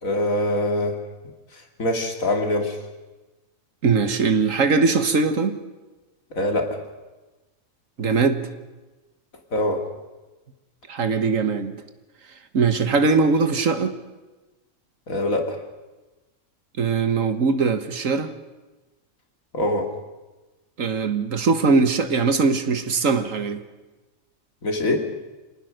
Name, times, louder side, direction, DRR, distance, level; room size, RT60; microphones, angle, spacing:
voice 1, 0.0-1.0 1.8-2.8 6.3-6.8 9.5-9.8 15.1-15.6 19.5-19.9 24.6-25.1, left 1 dB, 85° left, 3 dB, 3.2 m, -23 dB
voice 2, 3.8-5.6 8.0-8.5 10.9-11.8 12.5-14.0 16.8-18.3 20.8-23.6, right 4 dB, 75° right, 10 dB, 1.8 m, -21 dB
26.5 x 18.5 x 6.6 m, 1.2 s
omnidirectional pair, 1.4 m